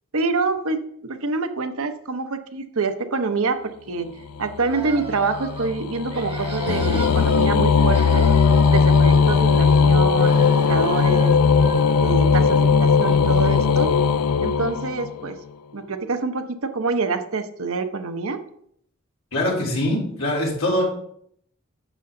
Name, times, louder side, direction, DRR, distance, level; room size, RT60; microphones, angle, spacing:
voice 1, 0.1-8.3 8.7-11.4 12.0-13.9 14.4-15.4 15.7-18.4, right 4 dB, 70° right, 8 dB, 0.8 m, -26 dB
sound 1, 4.4-15.3, left 5 dB, 85° left, 0.4 m, -18 dB
sound 2, 4.6-5.7 6.1-7.5 7.7-9.9 10.2-12.2, right 2 dB, 25° right, 1.5 m, -36 dB
voice 2, 19.3-20.8, left 1 dB, 65° left, -4 dB, 3.8 m, -23 dB
11.0 x 6.9 x 3.8 m, 0.67 s
head